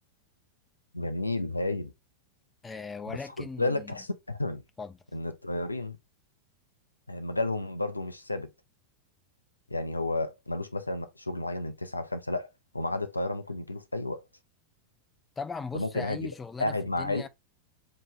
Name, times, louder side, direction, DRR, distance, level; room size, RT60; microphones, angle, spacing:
voice 1, 0.9-1.9 3.1-4.6 5.1-6.0 7.1-8.5 9.7-12.5 12.7-14.2 15.7-16.3 16.6-17.3, left 2 dB, 85° left, 0.5 m, -32 dB
voice 2, 2.6-3.9 4.8-5.0 15.4-17.3, left 5 dB, 15° left, 0.4 m, -39 dB
4.2 x 2.8 x 3.7 m
figure-of-eight pair, 90°, 0 cm